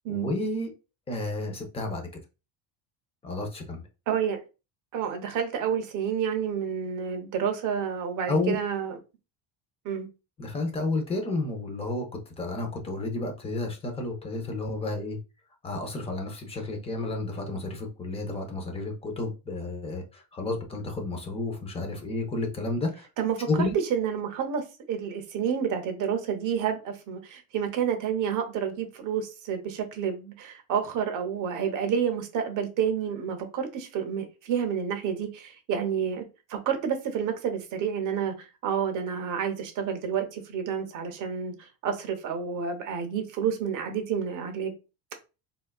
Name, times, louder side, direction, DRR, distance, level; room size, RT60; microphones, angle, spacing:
voice 1, 0.1-0.7 1.1-2.1 3.2-3.8 8.3-8.5 10.4-15.2 15.6-23.1 23.5-23.8, left 2 dB, 15° left, 0.4 m, -31 dB
voice 2, 4.1-4.4 4.9-9.0 9.8-10.1 23.2-23.5 23.9-36.2 36.5-44.7, right 7 dB, 45° right, 0.7 m, -29 dB
3.4 x 2.2 x 2.2 m
cardioid pair, 155°, 43 cm